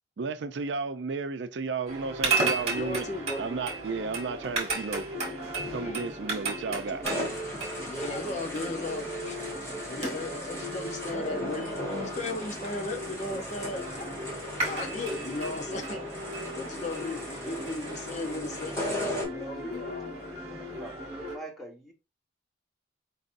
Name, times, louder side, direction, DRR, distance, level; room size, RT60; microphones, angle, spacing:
voice 1, 0.2-3.1 3.4-5.1 5.7-7.0, right 4 dB, 80° right, 0.5 m, -33 dB
sound 1, 1.9-21.4, right 2 dB, 35° right, 1.7 m, -35 dB
voice 2, 2.7-3.5 5.8-6.0 6.9-7.0 7.9-9.4 9.9-14.1 14.7-16.0 16.5-18.8 19.3-20.3, left 2 dB, 40° left, 0.7 m, -36 dB
sound 2, 7.0-19.2, left 1 dB, 15° left, 2.1 m, -37 dB
voice 3, 19.6-19.9 20.5-20.9 21.2-21.9, right 1 dB, ahead, 1.3 m, -42 dB
4.7 x 3.9 x 2.5 m
head